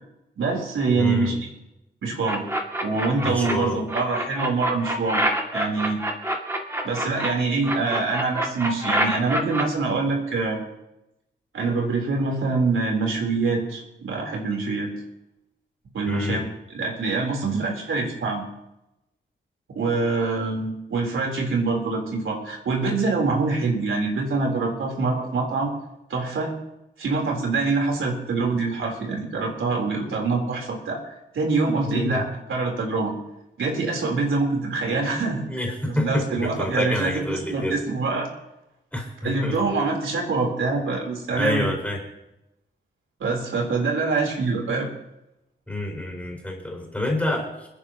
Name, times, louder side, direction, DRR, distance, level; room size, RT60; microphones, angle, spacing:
voice 1, 0.4-1.5 2.0-2.4 2.8-5.2 5.5-6.0 6.8-10.6 11.5-14.9 15.9-16.5 16.7-18.4 19.7-25.7 26.1-26.5 27.0-33.1 33.6-38.3 39.2-41.7 43.2-44.9, right 3 dB, 85° right, 0 dB, 3.8 m, -25 dB
voice 2, 1.0-1.4 3.2-3.9 16.0-16.4 17.4-17.6 31.9-32.2 35.5-37.8 38.9-39.5 41.3-42.0 45.7-47.7, left 1 dB, 5° left, -1 dB, 4.7 m, -28 dB
sound 1, 2.2-3.5 3.9-7.3 7.6-9.6, right 1 dB, 15° right, 2.3 m, -26 dB
28.5 x 10.5 x 3.0 m, 0.89 s
wide cardioid pair, 135°, 20 cm